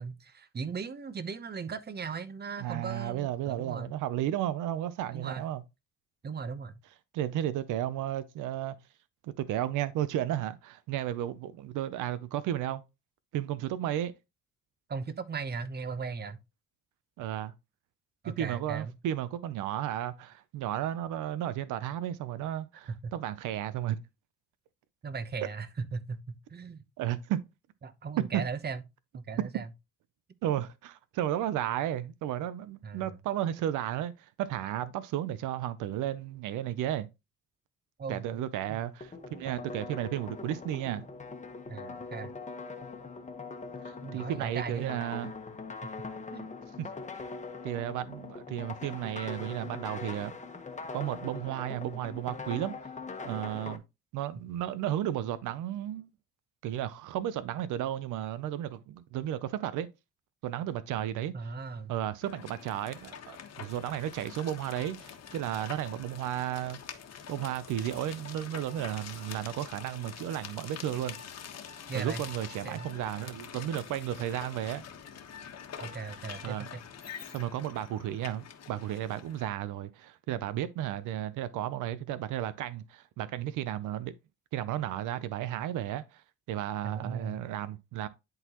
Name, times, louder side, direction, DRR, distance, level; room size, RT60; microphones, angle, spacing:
voice 1, 0.0-3.9 5.1-5.4 6.2-6.7 14.9-16.4 18.2-18.9 22.9-23.1 25.0-26.8 27.8-28.8 29.1-29.7 32.8-33.1 38.0-38.8 41.7-42.3 44.0-45.0 46.3-46.5 61.3-61.9 71.9-72.2 72.6-72.9 75.8-76.8 86.8-87.4, right 5 dB, 35° right, 0.9 m, -38 dB
voice 2, 2.6-5.6 7.1-8.7 9.2-12.8 13.3-14.1 17.2-17.5 18.4-24.0 27.0-27.4 28.2-28.4 30.4-37.1 38.1-41.0 43.8-45.3 46.8-46.9 47.6-50.3 50.9-52.9 53.2-53.8 54.1-56.1 56.6-59.9 60.4-61.3 61.9-66.8 67.3-71.2 71.9-74.8 76.4-76.7 77.3-84.1 84.5-88.1, right 12 dB, 90° right, 0.6 m, -33 dB
sound 1, 39.0-53.8, left 4 dB, 25° left, 1.2 m, -42 dB
sound 2, 62.2-79.5, left 8 dB, 60° left, 1.3 m, -46 dB
10.5 x 3.9 x 2.9 m
cardioid pair, 90°, 30 cm